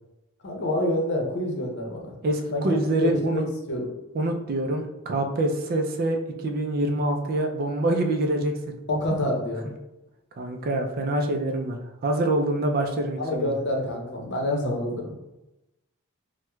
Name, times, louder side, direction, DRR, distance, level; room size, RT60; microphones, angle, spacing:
voice 1, 0.4-2.1 2.5-3.9 8.9-9.7 13.2-15.2, left 1 dB, 55° left, 0 dB, 0.7 m, -27 dB
voice 2, 2.2-3.4 4.1-6.2 6.4-8.8 10.4-11.8 12.0-13.5, right 2 dB, 45° right, 3 dB, 0.4 m, -25 dB
4.4 x 2.1 x 2.3 m, 0.96 s
head